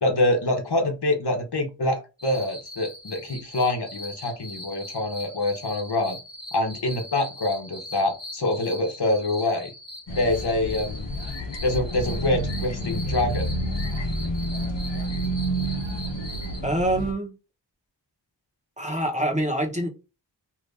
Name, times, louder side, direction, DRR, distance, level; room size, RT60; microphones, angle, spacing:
voice 1, 0.0-6.2 6.5-9.7 10.2-11.1 11.6-13.5, left 2 dB, 60° left, 1.0 m, -25 dB
sound 1, 2.2-16.6, left 1 dB, 20° left, 1.2 m, -41 dB
sound 2, 10.1-17.1, right 1 dB, 90° left, 0.8 m, -29 dB
voice 2, 16.6-17.3 18.8-19.9, right 1 dB, 15° right, 1.0 m, -25 dB
2.8 x 2.6 x 3.3 m
wide cardioid pair, 40°, 44 cm